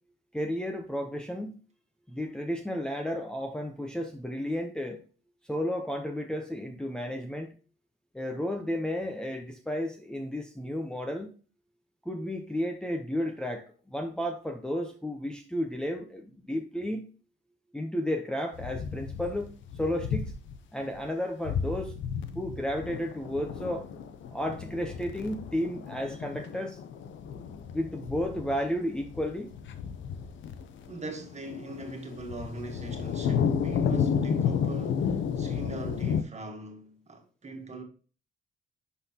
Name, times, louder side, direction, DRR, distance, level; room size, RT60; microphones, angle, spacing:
voice 1, 0.3-1.5 2.1-5.0 5.5-7.5 8.1-11.3 12.0-17.1 17.7-20.3 20.7-21.9 22.3-23.8 24.3-26.8 27.7-29.5, equal, 5° left, 0.8 m, -32 dB
sound 1, 18.5-20.6 20.9-21.1 21.4-36.2, left 7 dB, 75° left, 0.8 m, -32 dB
voice 2, 30.9-37.8, right 2 dB, 35° right, 1.8 m, -41 dB
11.0 x 4.1 x 2.9 m
cardioid pair, 90°, 20 cm